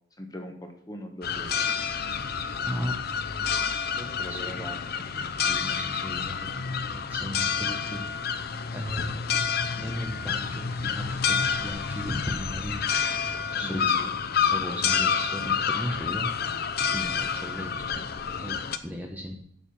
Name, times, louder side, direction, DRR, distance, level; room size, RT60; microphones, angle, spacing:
voice 1, 0.2-1.6 4.2-4.8 13.6-13.9 14.4-14.5, left 1 dB, 20° left, 4 dB, 1.2 m, -40 dB
sound 1, 1.2-18.8, left 6 dB, 45° left, 0.6 m, -29 dB
voice 2, 2.6-3.0 3.4-4.6 5.1-8.5 8.7-9.3 9.8-19.4, equal, 10° right, 1 dB, 0.9 m, -37 dB
7.3 x 6.6 x 7.2 m, 0.67 s
head